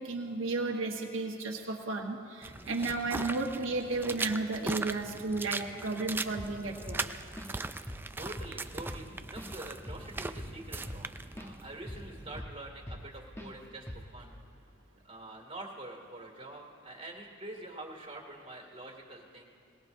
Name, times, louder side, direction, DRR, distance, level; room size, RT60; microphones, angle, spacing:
voice 1, 0.0-7.0, right 3 dB, 80° right, 1 dB, 1.2 m, -33 dB
sound 1, 2.4-12.4, right 3 dB, 10° right, 0.3 m, -40 dB
Drum kit / Drum, 6.4-6.6 6.9-7.6 7.9-8.1 8.4-11.5 11.9-13.1 13.4-13.5 13.9-14.2, equal, 15° left, 1.0 m, -43 dB
voice 2, 8.2-13.9 14.1-14.4 15.0-19.5, right 2 dB, 30° right, 0 dB, 2.3 m, -46 dB
21.5 x 20.0 x 2.7 m, 2.4 s
head